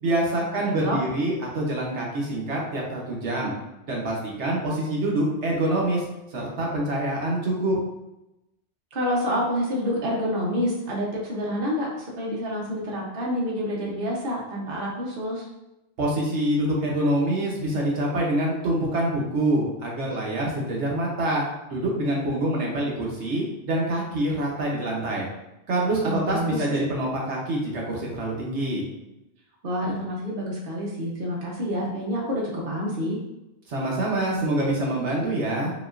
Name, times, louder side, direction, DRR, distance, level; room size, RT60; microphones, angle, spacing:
voice 1, 0.0-3.5 3.9-6.0 6.3-7.8 16.0-25.3 25.7-28.9 33.7-35.7, right 1 dB, 75° right, -3 dB, 1.2 m, -26 dB
voice 2, 8.9-15.5 26.0-26.6 29.6-33.2, equal, 55° right, -3 dB, 1.0 m, -28 dB
5.0 x 2.9 x 2.5 m, 0.92 s
omnidirectional pair, 1.2 m